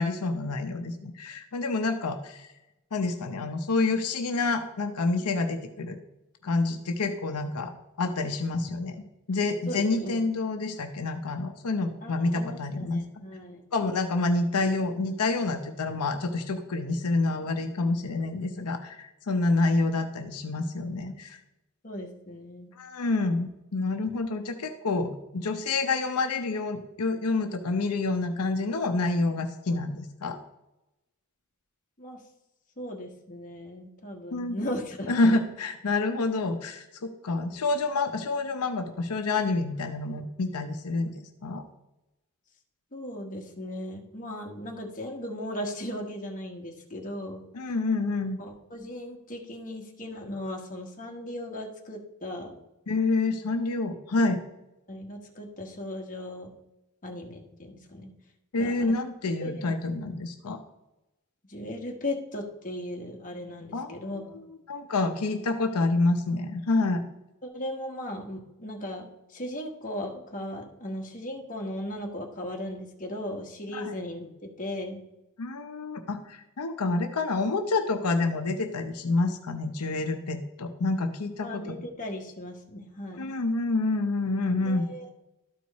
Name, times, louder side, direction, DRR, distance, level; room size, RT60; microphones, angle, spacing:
voice 1, 0.0-2.5 2.9-6.0 6.4-7.7 8.0-9.0 9.3-13.2 13.7-21.4 22.8-30.4 34.3-34.6 35.1-41.1 41.4-41.6 47.5-48.4 52.9-54.4 58.5-60.6 63.7-64.0 64.7-67.0 73.7-73.9 75.4-81.8 83.1-84.9, left 3 dB, 85° left, 6 dB, 0.7 m, -28 dB
voice 2, 9.7-10.2 12.0-13.6 21.8-22.7 32.0-32.2 32.8-35.5 42.9-47.4 48.4-52.5 54.9-56.5 57.0-58.1 58.6-58.9 59.4-59.7 61.5-64.4 67.4-75.0 81.4-83.3 84.7-85.0, left 1 dB, 35° left, 1 dB, 1.3 m, -37 dB
12.5 x 4.7 x 4.1 m, 0.92 s
head